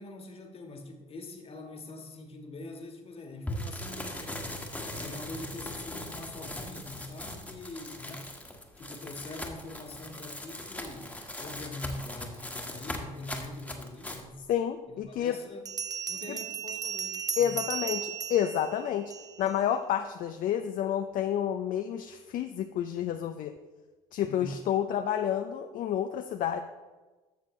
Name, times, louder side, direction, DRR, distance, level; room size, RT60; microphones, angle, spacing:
voice 1, 0.0-4.4 4.9-8.3 8.8-14.4 14.9-15.7 16.1-17.5 24.2-24.6, left 2 dB, 35° left, 4 dB, 1.6 m, -43 dB
sound 1, 3.5-14.2, left 1 dB, 10° left, 1.5 m, -40 dB
Bell, 14.4-14.5 15.7-19.5, right 7 dB, 20° right, 0.5 m, -36 dB
voice 2, 14.5-15.4 16.3-16.4 17.4-19.1 19.4-23.5 24.1-26.6, left 10 dB, 55° left, 7 dB, 0.6 m, -29 dB
12.0 x 6.8 x 3.2 m, 1.2 s
hypercardioid pair, 75°, 17 cm